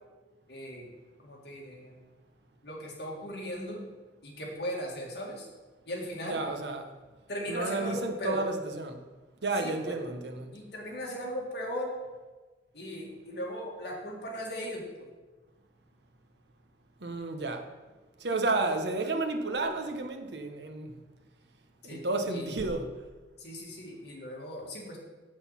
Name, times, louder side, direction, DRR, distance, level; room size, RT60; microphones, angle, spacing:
voice 1, 0.5-0.9 1.2-2.0 2.6-3.9 4.2-5.5 5.9-6.5 7.3-8.4 9.6-10.0 10.5-12.0 12.7-15.1 21.8-22.6 23.4-25.0, equal, 65° left, -2 dB, 2.1 m, -38 dB
voice 2, 6.2-6.8 7.5-9.0 9.4-10.6 17.0-17.7 18.2-20.9 21.8-22.9, right 3 dB, 75° right, 5 dB, 1.0 m, -32 dB
7.7 x 6.3 x 5.7 m, 1.3 s
head